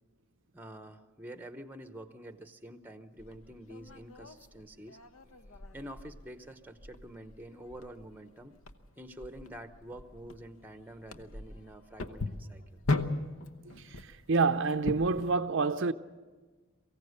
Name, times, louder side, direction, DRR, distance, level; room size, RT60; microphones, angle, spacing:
voice 1, 0.5-5.0 5.7-8.6 9.0-12.8, right 1 dB, 10° right, 0.9 m, -47 dB
sound 1, 3.2-15.3, left 2 dB, 75° left, 1.0 m, -39 dB
voice 2, 14.3-15.9, right 4 dB, 60° right, 0.6 m, -27 dB
23.5 x 16.0 x 8.1 m
head